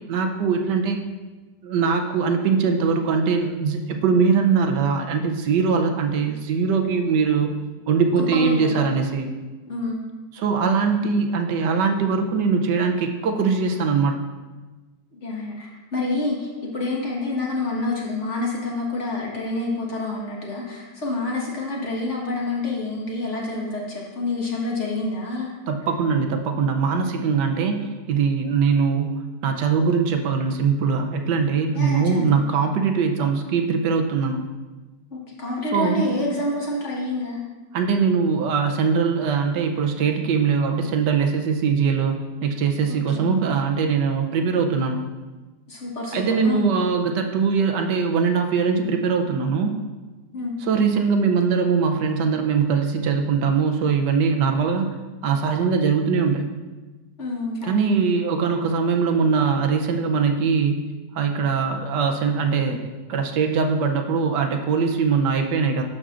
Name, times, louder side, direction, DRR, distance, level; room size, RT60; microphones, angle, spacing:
voice 1, 0.1-1.0 1.6-7.6 7.9-9.3 10.3-14.1 25.7-34.4 35.7-36.1 37.7-45.0 46.1-49.8 50.6-54.9 55.2-56.6 57.6-60.8 61.1-65.8, right 5 dB, 80° right, 4 dB, 1.3 m, -21 dB
voice 2, 8.2-8.9 9.7-10.0 15.1-25.5 31.7-32.1 35.1-37.4 42.9-43.3 45.7-46.7 50.3-50.5 57.2-57.9, left 2 dB, 45° left, -3 dB, 1.6 m, -28 dB
11.5 x 6.6 x 2.5 m, 1.2 s
omnidirectional pair, 1.9 m